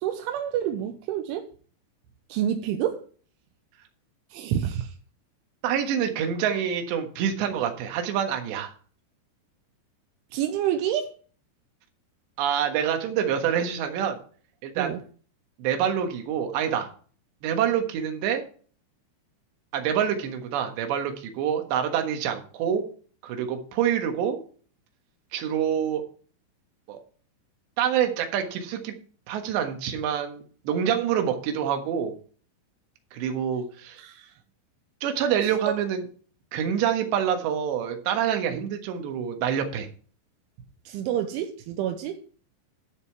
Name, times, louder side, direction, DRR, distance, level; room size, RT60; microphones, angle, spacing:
voice 1, 0.0-1.5 2.3-3.1 4.3-4.9 10.3-11.1 14.8-15.0 34.0-34.3 35.5-35.8 38.5-38.6 40.9-42.2, right 10 dB, 85° right, 3.2 m, -28 dB
voice 2, 5.6-8.7 12.4-14.2 14.6-14.9 15.6-16.9 17.4-18.4 19.7-22.9 23.2-24.4 25.3-26.0 26.9-27.0 27.8-28.9 29.3-32.1 33.1-34.0 35.0-36.0 36.5-39.9, right 8 dB, 70° right, 3.5 m, -26 dB
12.0 x 6.9 x 4.5 m
omnidirectional pair, 5.5 m